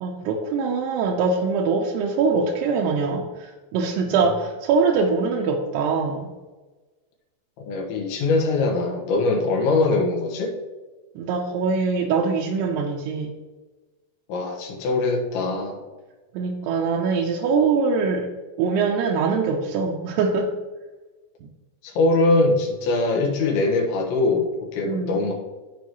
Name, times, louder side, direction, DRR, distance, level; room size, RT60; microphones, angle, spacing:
voice 1, 0.0-6.3 11.2-13.3 16.3-18.3 18.6-20.5 24.8-25.2, right 4 dB, 80° right, -1 dB, 2.5 m, -23 dB
voice 2, 7.7-10.5 14.3-15.8 21.8-25.3, left 3 dB, 85° left, -1 dB, 3.7 m, -22 dB
14.0 x 4.7 x 3.1 m, 1.2 s
omnidirectional pair, 5.3 m